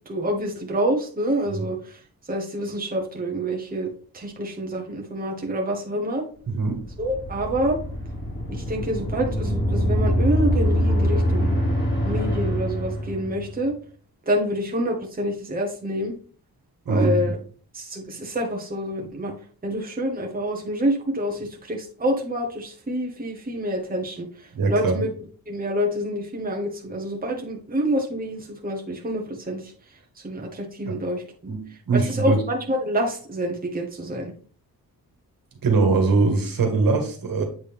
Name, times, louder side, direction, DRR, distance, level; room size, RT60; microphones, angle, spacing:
voice 1, 0.0-2.0 2.3-3.9 4.1-6.2 7.0-7.8 8.5-11.6 12.0-13.7 14.3-16.1 16.9-17.4 17.7-19.3 19.6-24.3 24.7-25.1 25.5-29.7 30.2-31.2 31.9-34.3, equal, 25° right, 0 dB, 1.3 m, -27 dB
voice 2, 6.5-6.8 16.9-17.2 24.6-25.0 30.9-31.0 31.5-31.6 31.9-32.4 35.6-37.4, right 3 dB, 65° right, 3 dB, 1.8 m, -21 dB
sound 1, 6.6-13.6, equal, 30° left, 2.5 m, -24 dB
8.3 x 3.9 x 3.5 m, 0.42 s
wide cardioid pair, 105°, 37 cm